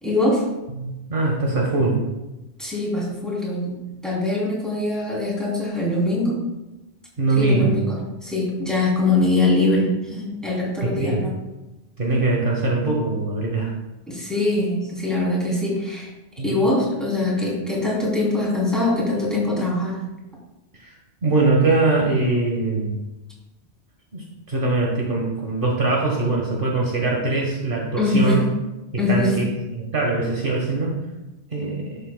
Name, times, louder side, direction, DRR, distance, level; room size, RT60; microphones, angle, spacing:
voice 1, 0.0-0.4 2.6-3.7 4.0-6.4 7.4-7.9 8.2-11.3 14.1-16.1 16.4-20.0 28.0-28.5 29.0-29.3, left 2 dB, ahead, -5 dB, 2.9 m, -22 dB
voice 2, 0.8-2.0 7.2-7.8 10.8-11.2 12.0-13.7 16.4-16.5 20.8-20.9 21.2-23.0 24.1-28.4 29.1-31.0 31.5-32.0, right 3 dB, 55° right, -2 dB, 1.4 m, -22 dB
12.0 x 6.9 x 2.2 m, 1.0 s
omnidirectional pair, 1.1 m